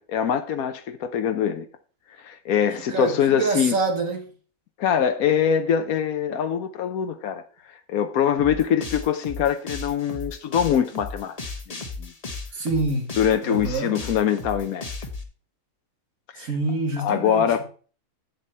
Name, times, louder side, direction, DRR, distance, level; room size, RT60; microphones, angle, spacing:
voice 1, 0.1-1.7 2.2-3.8 4.8-7.4 7.9-11.4 11.7-12.1 13.2-14.9 16.4-16.5 17.0-17.6, left 8 dB, 85° left, 1.2 m, -23 dB
voice 2, 2.9-4.3 12.5-13.0 13.5-14.0 16.4-17.6, right 3 dB, 70° right, 1.7 m, -26 dB
sound 1, 8.4-15.2, left 3 dB, 30° left, 1.2 m, -35 dB
8.2 x 7.5 x 4.3 m
omnidirectional pair, 1.5 m